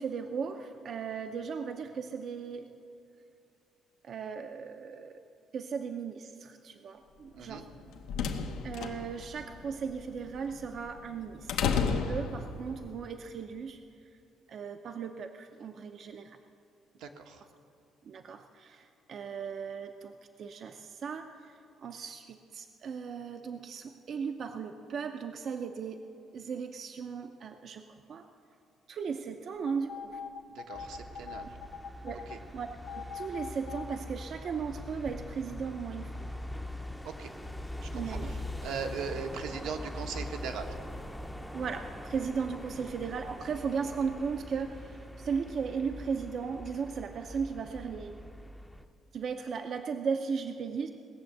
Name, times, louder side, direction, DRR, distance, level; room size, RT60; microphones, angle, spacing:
voice 1, 0.0-2.7 4.0-5.2 5.5-7.7 8.6-13.8 14.5-16.4 18.0-26.0 26.3-27.8 28.1-28.3 28.9-30.2 32.0-32.7 33.0-36.2 37.9-38.3 41.5-48.2 49.1-50.9, right 6 dB, 45° right, 6 dB, 0.6 m, -37 dB
sound 1, 7.6-12.9, left 6 dB, 90° left, 1.0 m, -33 dB
voice 2, 17.0-17.5 30.5-31.5 32.3-32.4 37.0-37.3 37.9-38.2 38.6-40.7, right 6 dB, 80° right, 4 dB, 1.2 m, -39 dB
sound 2, 29.7-32.4 32.9-34.0 34.5-34.6, left 6 dB, 60° left, 0.7 m, -42 dB
sound 3, 30.7-48.8, left 1 dB, 5° left, 0.6 m, -43 dB
18.5 x 7.1 x 7.8 m, 2.5 s
cardioid pair, 145°, 0 cm